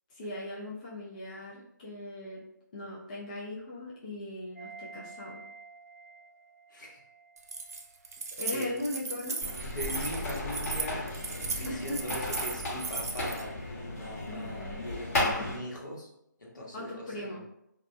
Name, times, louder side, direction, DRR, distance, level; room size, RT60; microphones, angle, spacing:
voice 1, 0.1-2.4 2.7-5.4 8.4-9.4 11.7-12.2 14.3-14.9 15.2-15.6 16.7-17.4, left 2 dB, 25° left, -7 dB, 0.4 m, -39 dB
sound 1, 4.5-8.5 8.7-8.8, right 4 dB, ahead, 0.7 m, -51 dB
voice 2, 6.7-7.0 8.5-8.8 9.6-16.1 16.4-17.4, equal, 70° left, -3 dB, 0.9 m, -40 dB
Keys jangling, 7.4-13.4, right 4 dB, 50° right, 0.4 m, -37 dB
sound 2, 9.4-15.6, left 1 dB, 45° left, 0.9 m, -35 dB
2.3 x 2.1 x 2.6 m, 0.79 s
figure-of-eight pair, 160°, 10 cm